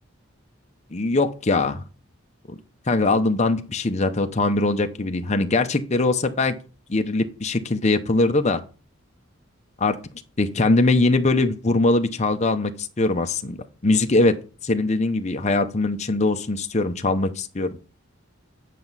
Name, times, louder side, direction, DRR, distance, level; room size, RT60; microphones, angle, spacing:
voice 1, 0.9-1.8 2.5-2.6 2.9-6.5 6.9-8.6 9.8-10.0 10.4-13.6 13.8-14.4 14.6-17.7, left 2 dB, 30° left, 7 dB, 0.6 m, -21 dB
9.3 x 5.8 x 4.0 m, 0.36 s
head